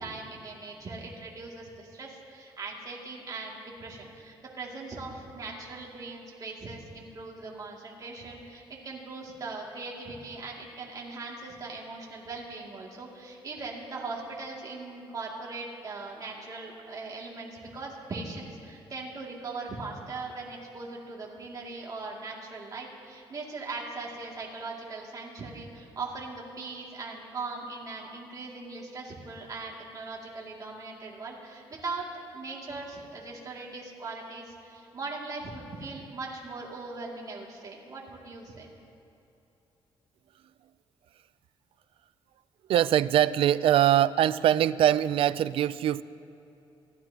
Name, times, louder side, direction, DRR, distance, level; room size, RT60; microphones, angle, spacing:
voice 1, 0.0-38.7, right 3 dB, 40° right, -3 dB, 2.5 m, -40 dB
voice 2, 42.7-46.0, right 11 dB, 70° right, 16 dB, 0.4 m, -22 dB
27.0 x 12.5 x 2.9 m, 2.8 s
cardioid pair, 120°, 10 cm